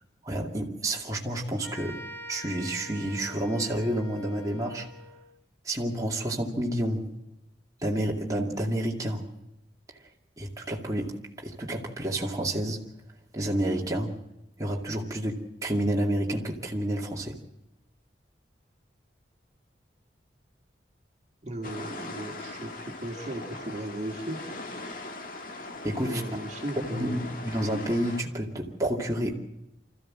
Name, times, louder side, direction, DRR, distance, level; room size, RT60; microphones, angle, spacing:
voice 1, 0.2-2.0 2.3-4.9 5.6-7.1 7.8-9.3 10.4-12.8 13.3-14.2 14.6-17.4 25.8-26.2 26.8-29.3, right 1 dB, 20° right, -2 dB, 2.4 m, -29 dB
sound 1, 1.6-5.3, equal, 15° left, 4.1 m, -44 dB
voice 2, 21.4-24.4 26.0-27.4, right 1 dB, 40° right, 1 dB, 2.2 m, -36 dB
sound 2, 21.6-28.2, left 2 dB, 50° left, 1.8 m, -40 dB
26.0 x 14.5 x 7.5 m, 0.93 s
head